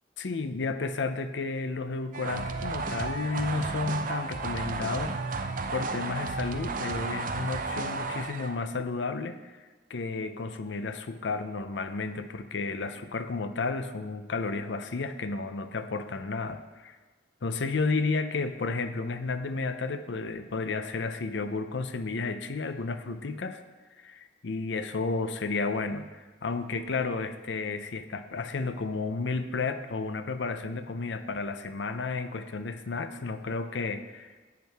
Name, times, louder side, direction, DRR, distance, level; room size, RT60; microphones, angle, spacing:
voice 1, 0.2-5.2 5.7-9.6 9.9-17.0 17.4-23.6 24.0-34.3, left 3 dB, 75° left, 10 dB, 0.6 m, -32 dB
sound 1, 2.1-8.7, right 3 dB, 50° right, 0.6 m, -33 dB
10.5 x 8.3 x 3.5 m, 1.3 s
head